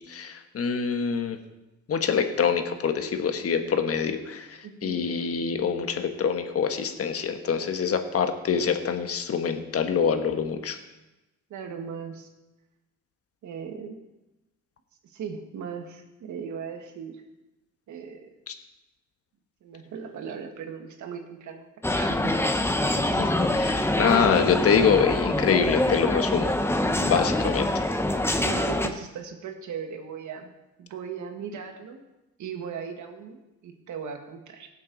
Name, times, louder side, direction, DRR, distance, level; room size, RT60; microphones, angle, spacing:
voice 1, 0.1-1.4 1.9-10.8 18.5-18.6 23.2-26.6 26.9-27.7, left 6 dB, 50° left, 7 dB, 1.3 m, -25 dB
voice 2, 4.6-5.0 11.5-12.3 13.4-14.0 15.1-17.2 17.9-18.3 19.6-21.7 21.9-22.5 23.1-23.3 28.4-30.5 30.8-32.0 32.4-34.7, right 6 dB, 70° right, 5 dB, 1.7 m, -38 dB
sound 1, 21.8-28.9, left 1 dB, 10° left, 0.9 m, -25 dB
17.5 x 7.5 x 4.0 m, 1.0 s
cardioid pair, 90°, 30 cm